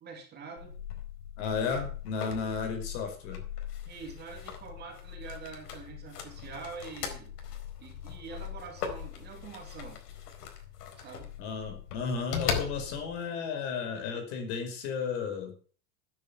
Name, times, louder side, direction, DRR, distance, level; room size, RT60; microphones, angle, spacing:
voice 1, 0.0-0.7 3.8-7.3 7.8-10.0 11.0-11.3, right 5 dB, 20° right, 3 dB, 2.6 m, -45 dB
sound 1, 0.6-13.2, left 8 dB, 90° left, 4.4 m, -39 dB
voice 2, 1.4-3.4 11.4-15.5, left 5 dB, 50° left, 6 dB, 4.9 m, -33 dB
13.0 x 9.7 x 7.1 m, 0.43 s
supercardioid pair, 175°, 45 cm